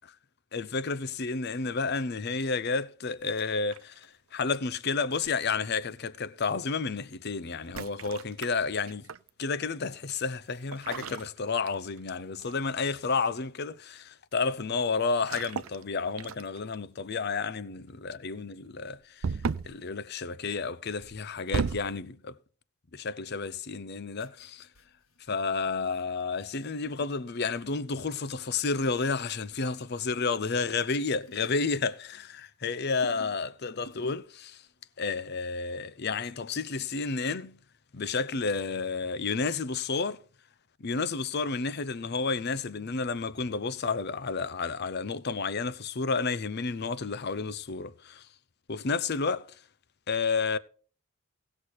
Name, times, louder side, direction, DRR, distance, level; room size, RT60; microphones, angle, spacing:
voice 1, 0.5-9.1 9.4-19.2 19.6-22.4 22.9-24.7 25.3-34.6 35.0-37.6 37.9-40.2 40.8-48.3 48.7-49.5 50.1-50.6, left 4 dB, 50° left, 0.6 m, -31 dB
sound 1, 3.3-4.0 5.2-5.6 7.6-9.3 10.7-12.1 12.4-12.7 15.2-15.8 16.2-16.7 19.2-19.8 21.0-22.0, right 5 dB, 80° right, 0.5 m, -35 dB
sound 2, 24.2-28.0 28.6-30.5 30.7-32.5 32.7-33.5 33.8-34.3 34.6-34.8, right 1 dB, 80° left, 2.0 m, -54 dB
17.5 x 6.7 x 4.3 m
head